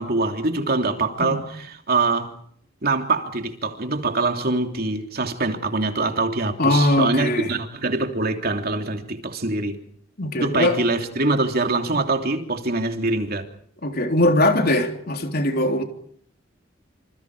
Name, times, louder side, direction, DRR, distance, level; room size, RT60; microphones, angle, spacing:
voice 1, 0.0-2.3 2.8-9.8 10.3-13.5, right 3 dB, 50° right, 3.1 m, -24 dB
voice 2, 6.6-7.5 10.2-10.8 13.8-15.8, left 1 dB, 50° left, 3.5 m, -20 dB
27.0 x 27.0 x 4.9 m
head